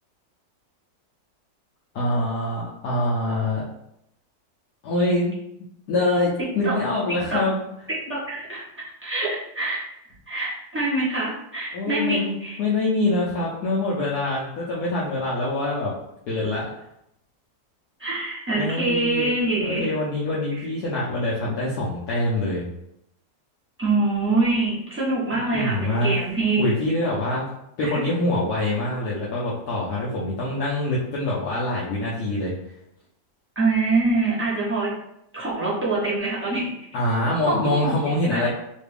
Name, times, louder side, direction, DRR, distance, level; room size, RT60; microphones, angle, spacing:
voice 1, 1.9-3.6 4.8-5.3 5.9-7.6 11.7-15.9 16.3-16.7 18.5-19.3 19.6-22.7 25.5-26.1 26.6-27.5 27.8-32.5 36.9-38.5, left 2 dB, 65° left, -6 dB, 1.1 m, -25 dB
voice 2, 8.1-8.6 9.0-9.8 10.3-12.6 18.0-19.9 23.8-26.7 27.8-28.0 33.5-34.9 35.3-36.7 37.5-38.0 38.3-38.5, right 2 dB, 10° right, -9 dB, 0.7 m, -24 dB
3.3 x 2.2 x 3.3 m, 0.78 s
omnidirectional pair, 2.0 m